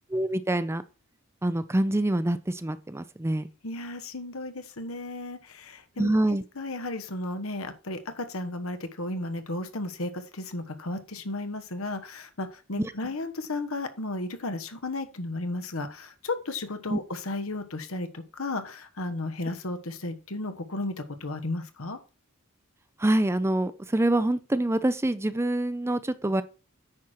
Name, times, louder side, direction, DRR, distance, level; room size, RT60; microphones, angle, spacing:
voice 1, 0.1-0.8 1.4-3.5 6.0-6.4 12.8-12.9 16.9-17.0 23.0-26.4, right 1 dB, 10° right, 0.5 m, -25 dB
voice 2, 3.6-22.0, left 2 dB, 80° left, 1.3 m, -34 dB
9.5 x 4.5 x 6.4 m
head